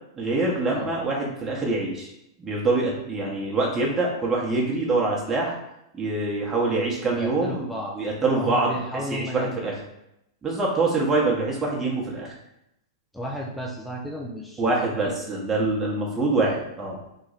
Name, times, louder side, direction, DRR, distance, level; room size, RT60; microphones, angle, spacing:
voice 1, 0.1-2.1 2.4-5.6 5.9-9.8 10.4-12.3 14.6-17.0, right 3 dB, 15° right, -3 dB, 1.0 m, -25 dB
voice 2, 7.1-7.9 8.2-9.6 13.1-14.7 15.0-15.2, equal, ahead, -2 dB, 0.5 m, -33 dB
3.1 x 2.5 x 4.0 m, 0.82 s
hypercardioid pair, 105°, 2 cm